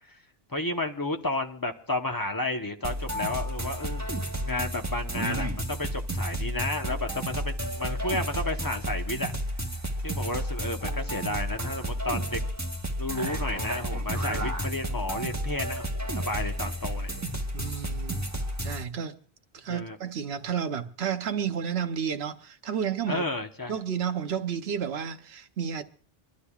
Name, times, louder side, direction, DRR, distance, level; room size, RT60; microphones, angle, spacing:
voice 1, 0.5-4.1 4.4-9.3 10.0-12.4 13.0-17.1 19.7-20.0 23.1-23.7, left 2 dB, 20° left, 0.9 m, -32 dB
sound 1, 2.8-18.8, right 1 dB, 15° right, 1.1 m, -32 dB
voice 2, 17.5-18.3 18.6-19.2 19.5-23.2 23.7-25.8, right 8 dB, 90° right, 1.1 m, -31 dB
26.0 x 11.5 x 2.3 m
omnidirectional pair, 1.0 m